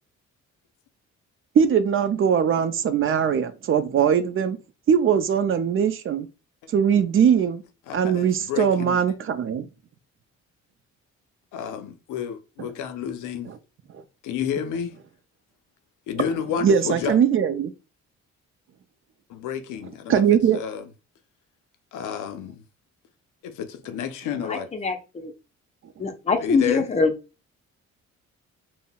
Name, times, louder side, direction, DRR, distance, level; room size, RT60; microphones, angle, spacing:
voice 1, 1.6-4.6 4.9-6.3 6.7-7.6 7.9-9.7 16.6-17.7 20.1-20.6, right 8 dB, 45° right, 0.4 m, -20 dB
voice 2, 7.9-9.0 11.5-13.5 14.2-14.9 16.1-17.2 19.3-20.2 20.5-20.9 21.9-22.6 23.4-24.7 26.4-26.8, left 8 dB, 80° left, 0.5 m, -30 dB
voice 3, 24.5-25.3 26.0-27.1, left 4 dB, 20° left, 0.6 m, -23 dB
3.8 x 2.1 x 2.2 m
cardioid pair, 90°, 30 cm